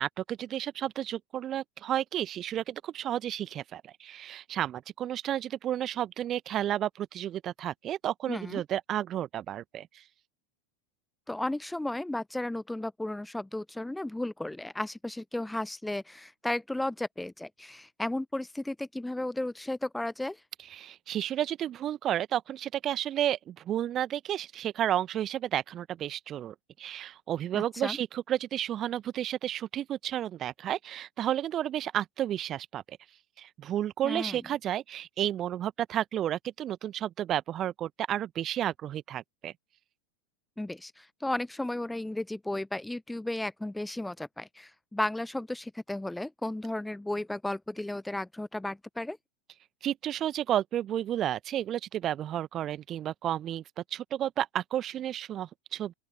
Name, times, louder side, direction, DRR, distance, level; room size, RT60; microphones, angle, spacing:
voice 1, 0.0-10.0 20.7-33.0 33.4-39.5 49.8-53.6 53.9-55.9, right 11 dB, 35° right, 1.3 m, -32 dB
voice 2, 8.3-8.6 11.3-20.4 27.5-28.0 34.0-34.4 40.6-49.2, left 1 dB, 5° left, 0.9 m, -34 dB
open air
figure-of-eight pair, 85°, 0 cm